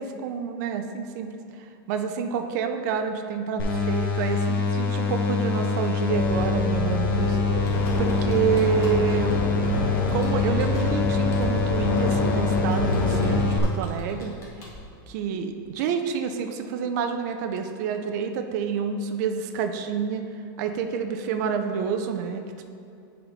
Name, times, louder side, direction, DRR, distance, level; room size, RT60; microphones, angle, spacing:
voice 1, 0.0-7.7 8.0-9.3 10.1-14.3 15.1-20.2 20.6-22.7, right 7 dB, 50° right, 6 dB, 0.5 m, -28 dB
sound 1, 3.6-13.6, left 4 dB, 80° left, 1.0 m, -25 dB
sound 2, 6.1-13.4, left 1 dB, 45° left, 1.0 m, -28 dB
Computer keyboard, 7.5-14.8, left 2 dB, 25° left, 1.2 m, -45 dB
9.4 x 4.2 x 4.1 m, 2.6 s
supercardioid pair, 165°, 12 cm